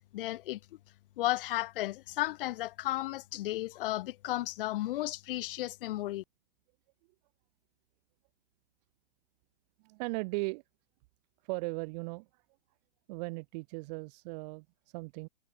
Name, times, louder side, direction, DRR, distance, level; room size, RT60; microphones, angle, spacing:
voice 1, 0.1-0.6 1.2-6.2, left 16 dB, 45° left, 0.9 m, -34 dB
voice 2, 9.8-10.6 11.4-12.4 13.1-15.3, right 28 dB, 35° right, 1.0 m, -37 dB
figure-of-eight pair, 120°, 37 cm